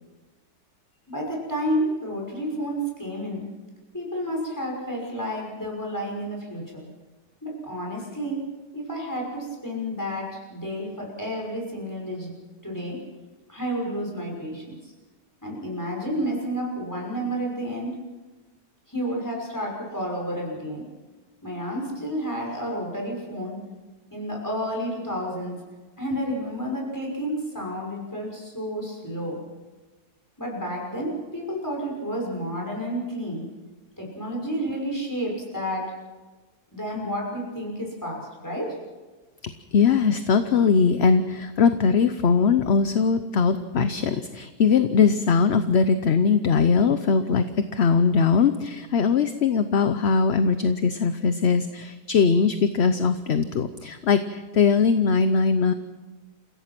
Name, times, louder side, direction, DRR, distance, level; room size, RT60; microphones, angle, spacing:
voice 1, 1.1-3.4 3.9-6.9 7.4-8.4 8.7-12.3 12.6-13.0 13.5-14.7 15.4-18.0 18.9-20.8 21.4-23.6 24.1-25.6 26.0-29.4 30.4-33.5 34.0-35.9 36.7-38.7, equal, 10° left, -2 dB, 5.9 m, -30 dB
voice 2, 39.4-55.7, left 5 dB, 50° left, 10 dB, 0.9 m, -21 dB
29.0 x 16.0 x 6.0 m, 1.3 s
omnidirectional pair, 1.7 m